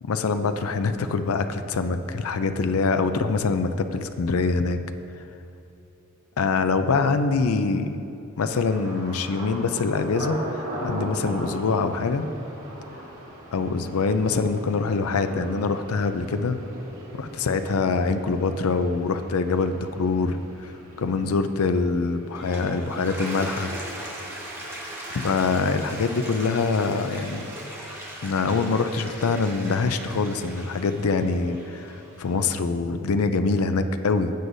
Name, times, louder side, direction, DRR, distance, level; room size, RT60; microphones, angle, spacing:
voice 1, 0.0-4.8 6.4-8.0 8.4-12.3 13.5-16.6 17.2-23.7 25.1-27.5 28.2-31.9 32.2-34.3, left 4 dB, 85° left, 9 dB, 0.5 m, -24 dB
Thunder, 8.6-24.3 24.6-25.2 25.6-25.9, right 1 dB, 70° right, 2.1 m, -39 dB
Toilet flush, 22.1-32.4, right 1 dB, 10° right, 1.4 m, -39 dB
15.5 x 7.9 x 2.7 m, 2.7 s
head